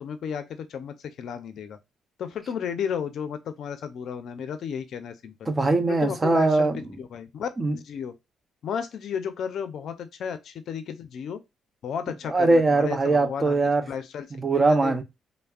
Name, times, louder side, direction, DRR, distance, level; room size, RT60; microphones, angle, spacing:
voice 1, 0.0-1.8 2.2-5.5 5.9-8.1 8.6-11.4 11.8-13.5 13.9-14.3 14.5-14.9, left 7 dB, 65° left, 0.4 m, -33 dB
voice 2, 5.5-6.8 7.6-7.8 12.3-13.9 14.3-15.0, right 3 dB, 25° right, 0.5 m, -21 dB
3.3 x 2.0 x 2.3 m
cardioid pair, 90°, 0 cm